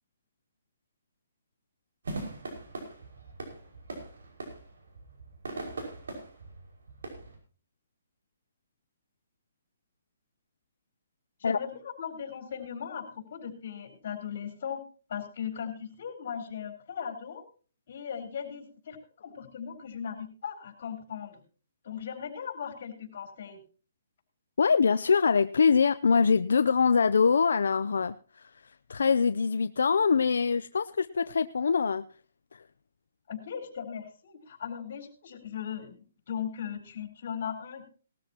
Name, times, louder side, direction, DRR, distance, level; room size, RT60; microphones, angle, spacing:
sound 1, 2.0-7.4, right 2 dB, 90° right, 5.5 m, -41 dB
voice 1, 11.4-14.8 15.1-17.4 17.9-21.4 21.8-23.6 33.3-36.0 36.3-37.9, left 8 dB, 55° left, 7 dB, 4.3 m, -38 dB
voice 2, 24.6-32.1 32.5-32.6, left 5 dB, 85° left, 11 dB, 0.5 m, -24 dB
19.0 x 13.5 x 2.9 m, 0.38 s
hypercardioid pair, 160°, 0 cm